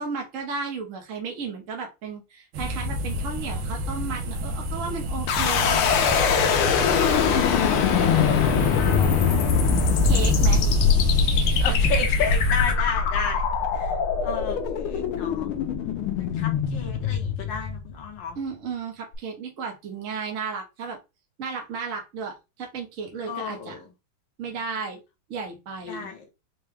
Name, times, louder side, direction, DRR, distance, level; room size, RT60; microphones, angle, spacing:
voice 1, 0.0-6.2 9.8-10.6 18.4-21.0 21.4-23.7 24.4-25.0 25.3-26.1, right 5 dB, 55° right, 0.9 m, -34 dB
sound 1, 2.5-12.8, equal, 75° right, 1.6 m, -30 dB
sound 2, 5.3-18.2, left 5 dB, 85° left, 1.5 m, -22 dB
voice 2, 6.9-9.2 11.6-13.4 13.7-13.9 14.2-15.5 16.2-18.4 23.3-23.9 25.9-26.3, left 5 dB, 65° left, 1.5 m, -33 dB
4.7 x 2.2 x 3.3 m
omnidirectional pair, 2.3 m